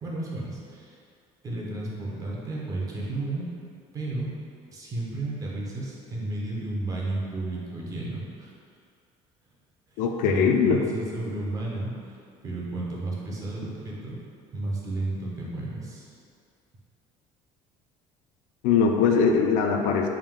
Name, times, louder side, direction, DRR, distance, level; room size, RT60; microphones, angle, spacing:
voice 1, 0.0-1.0 1.4-3.5 3.9-4.3 4.7-8.5 9.9-12.2 12.4-14.2 14.5-16.1, right 2 dB, 25° right, -4 dB, 0.6 m, -33 dB
voice 2, 10.0-10.8 18.6-20.1, left 6 dB, 80° left, 3 dB, 0.4 m, -21 dB
3.5 x 2.7 x 3.5 m, 2.4 s
cardioid pair, 160°, 13 cm